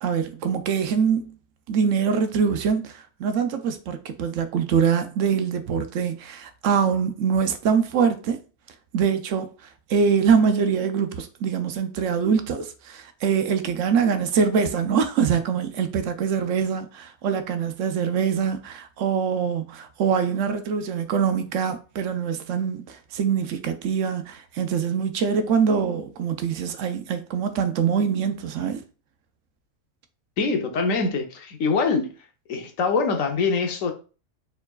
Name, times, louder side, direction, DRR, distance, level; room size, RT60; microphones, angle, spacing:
voice 1, 0.0-1.3 1.7-8.4 8.9-9.5 9.9-28.8, right 6 dB, 75° right, 0.9 m, -24 dB
voice 2, 30.4-32.1 32.5-33.9, left 4 dB, 90° left, 1.2 m, -24 dB
4.4 x 3.9 x 2.3 m
omnidirectional pair, 1.3 m